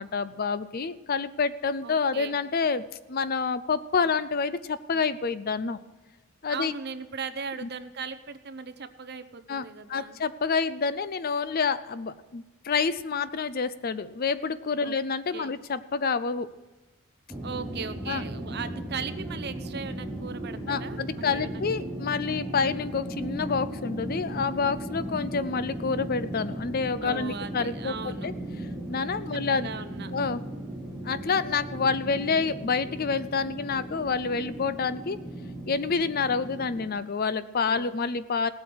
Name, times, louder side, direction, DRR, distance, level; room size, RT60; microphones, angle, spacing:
voice 1, 0.0-5.8 6.4-6.7 7.6-7.7 9.5-16.5 18.1-18.2 20.7-27.9 28.2-28.3 28.9-29.7 30.1-30.4 31.0-35.2 35.7-38.5, left 5 dB, 40° left, 15 dB, 0.5 m, -28 dB
voice 2, 1.8-2.4 6.5-10.2 14.8-14.9 15.3-15.5 17.4-21.6 22.6-22.8 27.0-28.3 28.9-30.1 37.7-37.9, right 5 dB, 45° right, 11 dB, 0.8 m, -38 dB
sound 1, 17.3-36.9, right 1 dB, 5° right, 1.3 m, -37 dB
17.5 x 8.4 x 6.2 m, 1.2 s
head